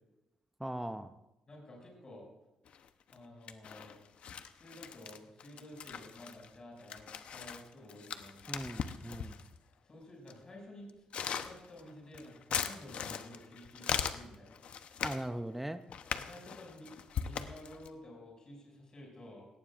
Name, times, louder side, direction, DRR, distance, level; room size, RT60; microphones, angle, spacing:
voice 1, 0.6-1.1 8.5-9.4 15.0-15.8, right 1 dB, 5° right, 9 dB, 0.6 m, -39 dB
voice 2, 1.5-2.3 3.1-4.0 4.4-8.7 9.8-11.1 11.3-14.6 16.1-19.5, left 1 dB, 35° left, -1 dB, 6.3 m, -52 dB
sound 1, 2.6-3.2 3.5-9.6 10.3-10.4 10.9-15.3 15.9-17.9, left 7 dB, 65° left, 0.8 m, -40 dB
17.5 x 17.0 x 2.5 m, 0.96 s
cardioid pair, 90°, 2 cm